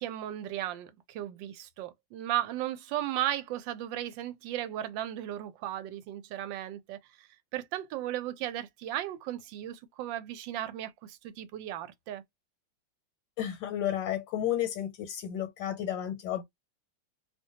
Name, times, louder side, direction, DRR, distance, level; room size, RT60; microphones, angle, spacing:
voice 1, 0.0-12.2, right 12 dB, 85° right, 1.3 m, -36 dB
voice 2, 13.4-16.4, left 11 dB, 85° left, 1.3 m, -32 dB
2.9 x 2.1 x 2.7 m
omnidirectional pair, 2.0 m